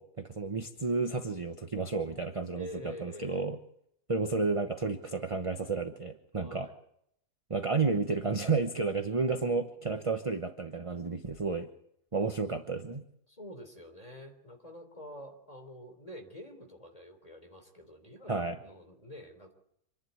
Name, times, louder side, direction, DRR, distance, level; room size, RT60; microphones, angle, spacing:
voice 1, 0.0-2.7 3.0-3.6 4.1-6.7 7.5-11.7 12.1-13.0 18.3-18.6, right 4 dB, 25° right, 7 dB, 0.9 m, -31 dB
voice 2, 2.5-3.5 6.4-6.8 13.3-19.5, left 1 dB, 20° left, 4 dB, 3.8 m, -47 dB
26.0 x 11.5 x 9.6 m, 0.74 s
omnidirectional pair, 1.7 m